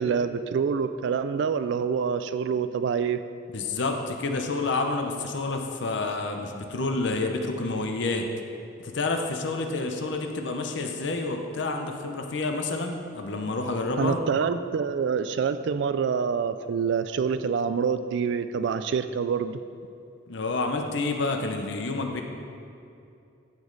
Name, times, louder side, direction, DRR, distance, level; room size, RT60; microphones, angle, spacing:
voice 1, 0.0-3.2 14.0-19.6, right 6 dB, 65° right, 11 dB, 0.3 m, -26 dB
voice 2, 3.5-8.3 8.8-14.2 20.3-22.2, left 3 dB, 65° left, 4 dB, 0.7 m, -29 dB
14.0 x 5.2 x 3.9 m, 2.6 s
head